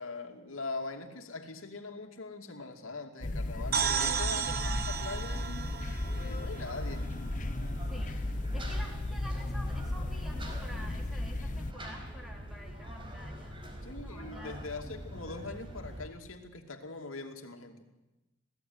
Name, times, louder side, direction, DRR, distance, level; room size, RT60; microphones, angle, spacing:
voice 1, 0.0-5.7 6.2-7.1 13.8-17.9, left 3 dB, 80° left, 4 dB, 2.6 m, -42 dB
sound 1, 3.2-11.7, left 2 dB, 40° left, 0.8 m, -35 dB
sound 2, 3.7-7.4, right 7 dB, 50° right, 1.5 m, -34 dB
voice 2, 3.9-4.9 7.9-8.2 8.5-13.6 14.0-14.6, equal, ahead, 1 dB, 3.9 m, -48 dB
sound 3, 5.1-16.1, equal, 25° right, 4.6 m, -44 dB
28.0 x 17.5 x 9.7 m, 1.0 s
head